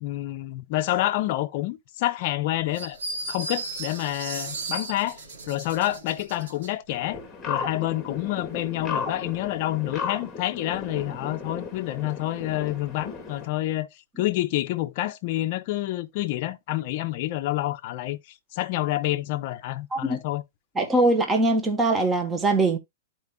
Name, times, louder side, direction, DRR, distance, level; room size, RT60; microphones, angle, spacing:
voice 1, 0.0-3.0 3.3-7.2 7.5-13.9 14.2-18.2 18.5-20.4, left 15 dB, 40° left, 0.6 m, -28 dB
sound 1, 2.7-6.7, right 3 dB, 80° right, 2.3 m, -35 dB
sound 2, 6.9-13.5, left 5 dB, 10° left, 1.6 m, -35 dB
voice 2, 20.8-22.8, right 2 dB, 15° right, 1.1 m, -22 dB
12.0 x 4.4 x 2.3 m
hypercardioid pair, 160°, 0 cm